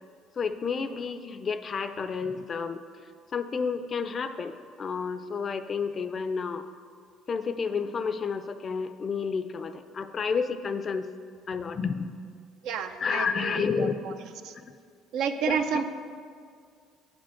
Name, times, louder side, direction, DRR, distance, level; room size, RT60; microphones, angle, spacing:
voice 1, 0.4-2.8 3.3-6.7 7.3-11.1 11.5-12.1 13.0-13.9 14.5-14.7 15.4-15.8, left 5 dB, 40° left, 10 dB, 0.4 m, -30 dB
voice 2, 12.6-14.1 14.4-14.5 15.1-15.8, right 7 dB, 70° right, 8 dB, 0.5 m, -30 dB
8.1 x 5.2 x 5.7 m, 2.1 s
cardioid pair, 95°, 0 cm